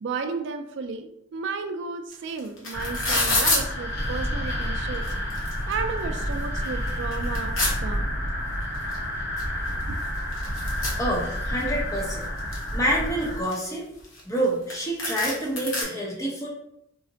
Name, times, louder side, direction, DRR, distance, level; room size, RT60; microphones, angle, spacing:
voice 1, 0.0-5.1 5.7-7.6 7.8-8.2 9.7-10.0, right 4 dB, 60° right, 7 dB, 0.3 m, -33 dB
sound 1, 2.1-2.2 2.4-3.6 4.5-4.6 4.9-5.7 6.2-6.3 6.6-7.7 8.9-9.0 9.4-9.5 9.7-11.6 12.0-12.7 13.2-14.4 14.7-14.8 15.0-15.8, left 2 dB, 85° left, 0.9 m, -27 dB
sound 2, 2.7-13.4, equal, 55° left, 0.7 m, -30 dB
voice 2, 11.0-12.3 12.7-13.8 14.3-16.5, right 1 dB, 15° left, -3 dB, 0.7 m, -27 dB
3.8 x 2.1 x 2.6 m, 0.79 s
head